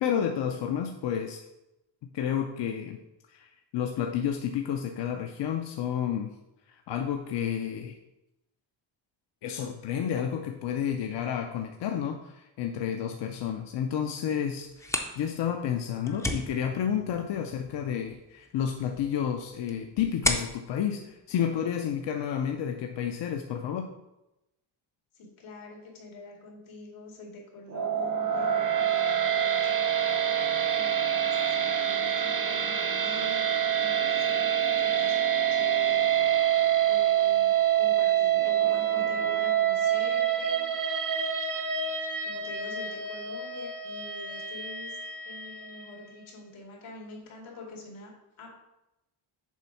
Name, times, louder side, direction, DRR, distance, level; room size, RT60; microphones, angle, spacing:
voice 1, 0.0-1.4 2.1-3.0 3.3-6.3 6.7-8.0 9.4-23.9, left 8 dB, 65° left, 4 dB, 0.6 m, -31 dB
sound 1, 14.6-22.1, left 1 dB, 5° left, 0.4 m, -36 dB
voice 2, 16.0-16.4 25.1-29.9 30.7-33.5 33.8-36.0 36.9-40.7 42.2-45.0 45.2-48.5, left 2 dB, 85° left, -2 dB, 2.5 m, -46 dB
sound 2, 27.7-45.9, right 9 dB, 40° right, 0.7 m, -26 dB
7.2 x 3.5 x 5.8 m, 0.93 s
wide cardioid pair, 175°, 47 cm